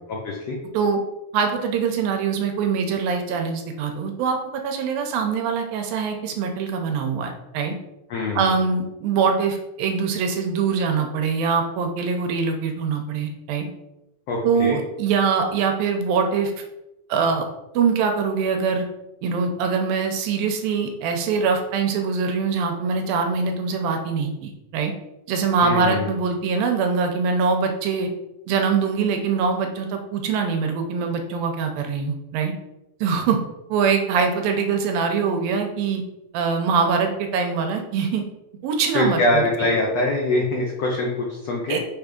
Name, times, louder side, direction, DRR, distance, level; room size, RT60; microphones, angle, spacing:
voice 1, 0.1-0.6 8.1-8.6 14.3-14.8 25.6-26.1 38.9-41.8, left 2 dB, 80° left, -1 dB, 1.4 m, -23 dB
voice 2, 1.3-4.4 4.6-7.8 8.4-13.7 14.4-16.5 17.1-17.5 17.7-18.9 19.2-24.9 25.3-28.1 28.5-32.5 33.0-33.4 33.7-36.0 36.3-38.2 38.6-39.7 41.7-41.8, right 5 dB, 80° right, 4 dB, 2.5 m, -23 dB
6.1 x 3.5 x 5.2 m, 0.92 s
omnidirectional pair, 4.2 m